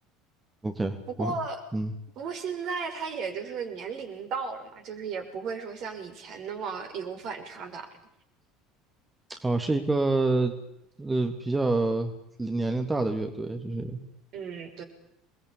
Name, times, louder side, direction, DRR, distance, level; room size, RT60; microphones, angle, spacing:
voice 1, 0.6-1.3 1.7-1.9 9.3-10.5 11.0-12.1 12.4-14.0, right 2 dB, 15° right, 5 dB, 3.2 m, -27 dB
voice 2, 1.2-1.6 2.2-7.9 14.3-14.8, right 5 dB, 50° right, 6 dB, 6.2 m, -35 dB
28.5 x 21.5 x 8.7 m, 0.79 s
figure-of-eight pair, 65°, 0 cm